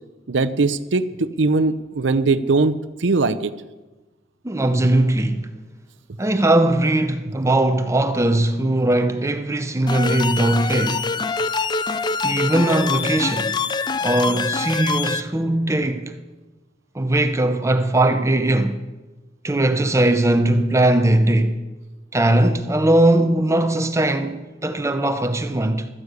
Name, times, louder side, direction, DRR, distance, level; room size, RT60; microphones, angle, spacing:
voice 1, 0.3-2.7 3.0-3.5, right 3 dB, 85° right, 0.7 m, -20 dB
voice 2, 4.4-5.5 6.2-11.1 12.2-13.6 14.0-16.2 16.9-18.8 19.4-21.6 22.1-25.9, right 1 dB, 15° right, 0.7 m, -19 dB
sound 1, 9.9-15.2, left 4 dB, 25° left, 0.5 m, -24 dB
13.5 x 9.7 x 8.0 m
head